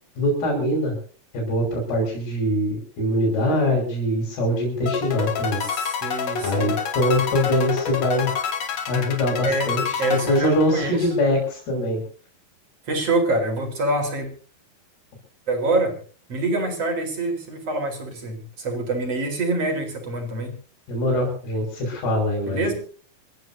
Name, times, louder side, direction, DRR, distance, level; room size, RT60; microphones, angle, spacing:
voice 1, 0.2-1.0 1.3-5.6 6.4-8.3 8.9-12.0 20.9-22.7, left 1 dB, 80° left, -2 dB, 7.6 m, -23 dB
sound 1, 4.9-11.2, left 6 dB, 55° left, 2.4 m, -28 dB
voice 2, 5.6-6.8 8.1-8.2 9.4-11.1 12.8-14.3 15.5-16.0 16.3-20.5 22.4-22.7, right 2 dB, 40° right, 3 dB, 5.1 m, -25 dB
28.0 x 14.5 x 2.8 m, 0.40 s
omnidirectional pair, 4.5 m